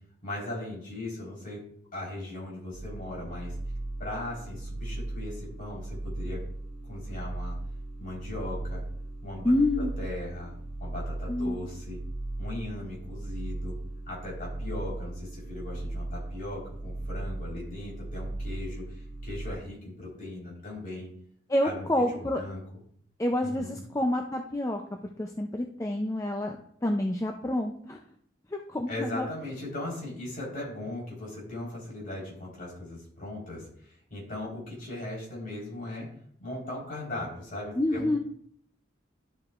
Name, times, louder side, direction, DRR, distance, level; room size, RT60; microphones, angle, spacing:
voice 1, 0.2-1.6 1.9-3.5 4.0-6.4 6.8-7.6 8.0-8.8 9.2-12.0 12.4-13.8 14.1-21.1 21.6-22.6 23.4-23.8 28.9-36.1 36.4-38.2, left 1 dB, 45° left, -4 dB, 3.9 m, -38 dB
sound 1, 2.7-19.5, right 2 dB, 65° right, 1.7 m, -37 dB
voice 2, 9.4-9.9 11.3-11.6 21.5-22.4 23.2-24.8 25.2-26.6 26.8-28.0 28.5-29.3 37.8-38.2, left 1 dB, 15° left, 3 dB, 0.4 m, -28 dB
11.5 x 7.7 x 2.4 m, 0.64 s
head